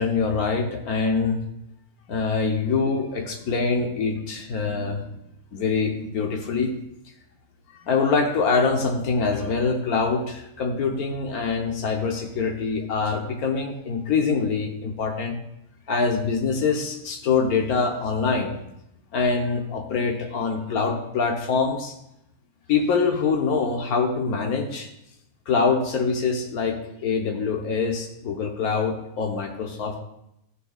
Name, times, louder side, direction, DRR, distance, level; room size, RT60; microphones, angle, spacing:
voice 1, 0.0-1.4 2.1-5.1 5.5-6.7 7.9-15.4 15.9-18.6 19.1-21.9 22.7-24.9 25.5-30.0, left 4 dB, 80° left, 3 dB, 1.4 m, -24 dB
14.0 x 9.8 x 2.4 m, 0.82 s
omnidirectional pair, 1.5 m